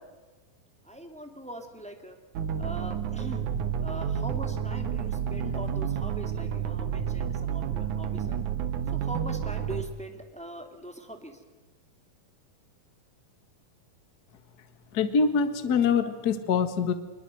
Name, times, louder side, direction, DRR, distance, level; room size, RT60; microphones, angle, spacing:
voice 1, 0.8-2.2 2.5-3.5 3.8-8.4 8.9-11.4, right 1 dB, 5° left, 5 dB, 1.3 m, -41 dB
sound 1, 2.3-9.8, right 8 dB, 65° right, 2.4 m, -30 dB
voice 2, 14.9-16.9, left 5 dB, 55° left, 9 dB, 1.0 m, -24 dB
23.0 x 22.0 x 7.8 m, 1.3 s
omnidirectional pair, 4.4 m